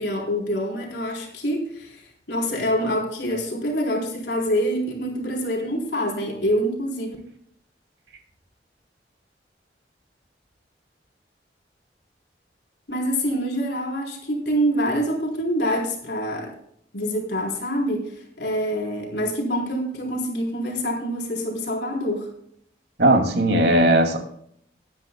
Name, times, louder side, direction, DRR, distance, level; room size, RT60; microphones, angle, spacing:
voice 1, 0.0-2.0 2.3-7.2 12.9-16.5 16.9-22.3, equal, 75° left, 0 dB, 3.8 m, -26 dB
voice 2, 23.0-24.2, right 1 dB, 75° right, 3 dB, 2.5 m, -18 dB
21.5 x 9.5 x 2.3 m, 0.67 s
head